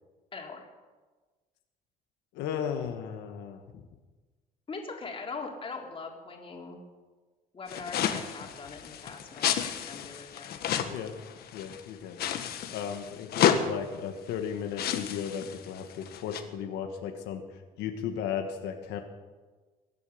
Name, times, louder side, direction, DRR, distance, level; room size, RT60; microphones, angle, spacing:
voice 1, 0.3-0.7 4.7-6.8 7.5-10.6, left 4 dB, 30° left, 0 dB, 3.4 m, -41 dB
voice 2, 2.3-3.8 10.9-11.1 11.5-12.2 12.7-19.0, left 8 dB, 90° left, 4 dB, 1.5 m, -35 dB
sound 1, 7.7-11.8 12.2-13.6 14.4-14.5 14.7-16.4, left 9 dB, 70° left, 1.5 m, -31 dB
22.5 x 8.5 x 7.0 m, 1.3 s
cardioid pair, 110°, 17 cm